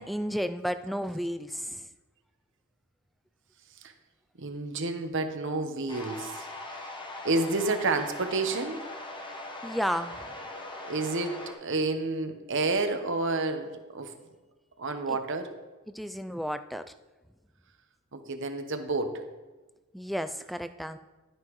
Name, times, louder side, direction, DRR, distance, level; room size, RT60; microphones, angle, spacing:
voice 1, 0.0-1.8 9.6-10.2 15.9-16.8 19.9-21.0, equal, ahead, 10 dB, 0.3 m, -32 dB
voice 2, 4.4-6.9 7.2-8.8 10.9-14.1 14.8-15.5 18.1-19.2, right 3 dB, 60° right, 7 dB, 1.0 m, -30 dB
sound 1, 5.9-11.5, left 2 dB, 20° left, 1.1 m, -40 dB
12.0 x 9.4 x 3.1 m, 1.2 s
head